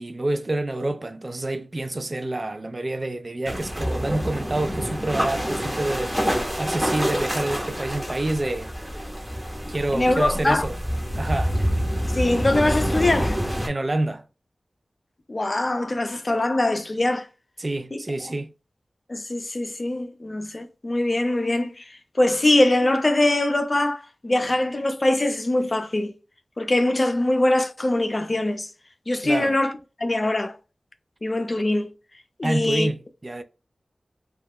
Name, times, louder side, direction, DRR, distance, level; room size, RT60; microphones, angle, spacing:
voice 1, 0.0-6.2 6.6-8.7 9.7-10.8 11.2-11.6 13.7-14.3 17.6-18.5 29.2-29.6 32.4-33.4, right 2 dB, 45° right, 0.3 m, -27 dB
sound 1, 3.5-13.7, equal, 10° right, 0.8 m, -27 dB
voice 2, 9.9-10.7 12.1-13.4 15.3-17.3 17.9-18.0 19.1-21.8 22.2-26.1 26.6-28.7 29.1-29.7 30.0-30.5 31.2-31.9 32.4-32.9, left 1 dB, 45° left, 0.4 m, -22 dB
2.3 x 2.0 x 3.4 m
cardioid pair, 45°, 0 cm